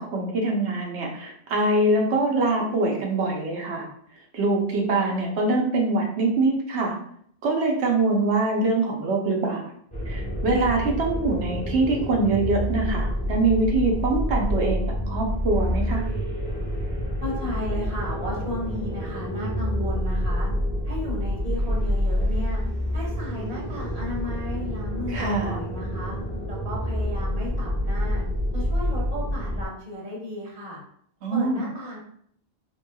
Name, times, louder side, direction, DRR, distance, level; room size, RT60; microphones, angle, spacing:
voice 1, 0.0-3.9 4.3-7.0 7.4-9.6 10.1-16.0 25.1-25.6 31.2-31.6, right 2 dB, 80° right, 0 dB, 1.0 m, -24 dB
sound 1, 9.9-29.7, equal, 5° left, 0.9 m, -28 dB
voice 2, 17.2-20.5 20.8-22.6 22.9-26.1 26.5-28.2 28.5-30.8 31.3-32.0, left 1 dB, 35° right, -5 dB, 1.1 m, -34 dB
3.4 x 3.0 x 2.2 m, 0.66 s
omnidirectional pair, 1.1 m